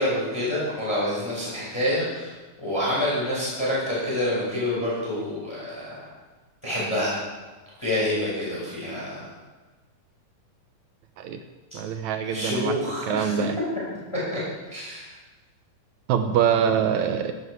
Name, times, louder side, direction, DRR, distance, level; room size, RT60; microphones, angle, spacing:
voice 1, 0.0-2.3 2.6-6.0 6.6-7.2 7.8-9.3 12.2-13.4 14.3-14.4 14.7-15.1, left 1 dB, 10° left, -7 dB, 5.5 m, -27 dB
voice 2, 11.7-12.8 13.1-13.6 16.1-17.3, right 8 dB, 75° right, 7 dB, 2.0 m, -24 dB
15.0 x 11.5 x 4.9 m, 1.2 s
omnidirectional pair, 3.6 m